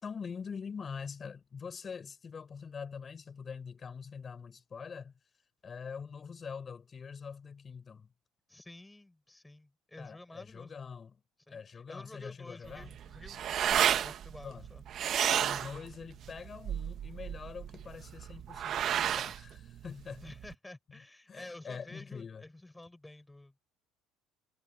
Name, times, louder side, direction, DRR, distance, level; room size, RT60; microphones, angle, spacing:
voice 1, 0.0-5.1 5.6-8.1 10.0-11.2 11.5-13.0 14.4-14.7 15.4-20.2 20.9-21.0 21.3-22.4, left 6 dB, 30° left, 6.0 m, -44 dB
voice 2, 8.5-10.8 11.5-14.8 20.2-23.6, left 2 dB, 10° left, 5.7 m, -51 dB
sound 1, 12.6-20.5, right 10 dB, 50° right, 1.1 m, -32 dB
cardioid pair, 120°, 0 cm